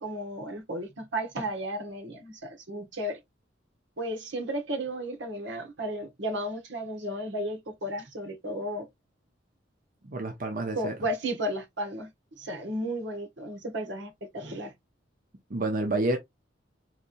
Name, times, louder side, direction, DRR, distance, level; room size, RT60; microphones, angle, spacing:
voice 1, 0.0-3.2 4.0-8.9 10.7-14.7, right 1 dB, 80° right, 1.5 m, -34 dB
voice 2, 10.1-10.9 15.5-16.2, right 2 dB, 50° right, 0.8 m, -29 dB
4.3 x 3.4 x 2.6 m
head